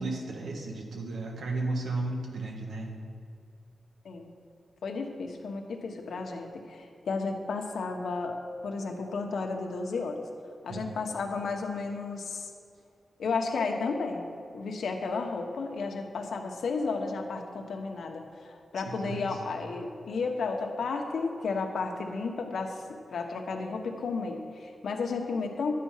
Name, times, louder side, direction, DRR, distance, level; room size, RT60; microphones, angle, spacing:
voice 1, 0.0-3.0 10.7-10.9 18.9-19.4, right 2 dB, 75° right, 1 dB, 1.7 m, -34 dB
voice 2, 4.8-8.4 8.6-10.3 10.6-12.5 13.2-14.2 14.5-25.7, left 4 dB, 80° left, 3 dB, 1.2 m, -33 dB
11.5 x 8.7 x 5.7 m, 2.4 s
wide cardioid pair, 125°, 0 cm